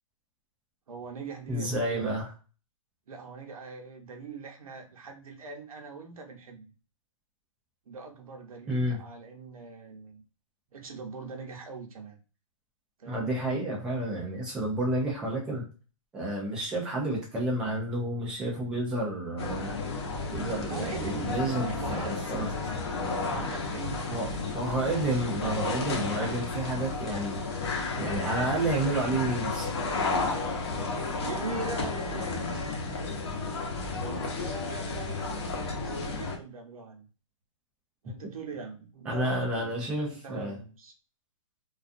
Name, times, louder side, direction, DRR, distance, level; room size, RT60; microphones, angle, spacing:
voice 1, 0.9-2.2 3.1-6.7 7.9-10.2 10.7-12.2 13.0-13.3 20.7-21.4 21.8-22.2 23.2-24.5 25.1-25.2 31.2-32.9 34.0-37.1 38.0-40.9, right 4 dB, 80° right, 2 dB, 0.8 m, -42 dB
voice 2, 1.5-2.3 8.7-9.0 13.1-15.6 16.1-19.8 20.3-22.8 24.1-24.3 24.5-27.4 28.0-29.7 39.1-40.6, right 1 dB, 5° right, -2 dB, 0.3 m, -30 dB
sound 1, 19.4-36.4, left 3 dB, 50° left, 0.7 m, -32 dB
2.4 x 2.2 x 2.5 m, 0.36 s
hypercardioid pair, 160°, 18 cm